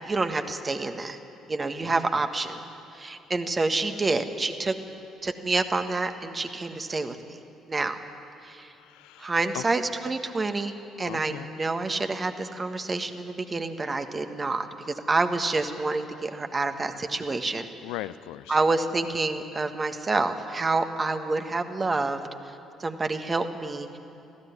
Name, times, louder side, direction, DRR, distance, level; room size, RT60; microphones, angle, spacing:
voice 1, 0.0-1.2 1.5-2.6 2.9-4.7 5.2-7.2 7.7-8.0 8.4-8.7 9.2-14.7 15.1-17.7 18.5-22.2 22.8-24.0, right 3 dB, 30° right, 8 dB, 1.5 m, -28 dB
voice 2, 1.8-2.2 8.8-9.6 11.0-11.5 17.8-18.6, left 15 dB, 65° left, 14 dB, 0.4 m, -39 dB
19.5 x 15.5 x 9.7 m, 2.7 s
figure-of-eight pair, 45°, 0 cm